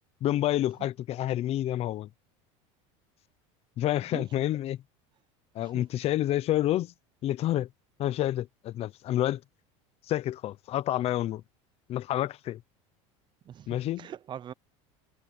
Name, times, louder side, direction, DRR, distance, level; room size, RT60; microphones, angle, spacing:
voice 1, 0.2-2.1 3.8-4.8 5.5-6.9 7.2-7.7 8.0-9.4 10.1-11.4 11.9-12.6 13.7-14.1, left 13 dB, 40° left, 0.8 m, -28 dB
voice 2, 13.4-14.5, right 9 dB, 30° right, 0.7 m, -42 dB
supercardioid pair, 135°, 16 cm